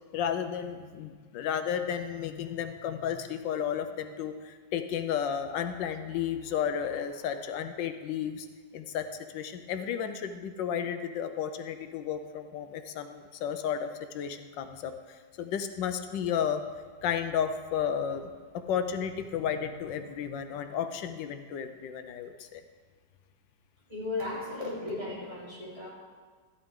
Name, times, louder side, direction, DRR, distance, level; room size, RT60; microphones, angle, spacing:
voice 1, 0.1-8.5 8.7-16.6 17.0-22.6, left 8 dB, 90° left, 8 dB, 1.4 m, -33 dB
voice 2, 23.9-25.9, left 2 dB, 20° right, -7 dB, 3.7 m, -35 dB
13.0 x 11.0 x 3.7 m, 1.5 s
omnidirectional pair, 1.9 m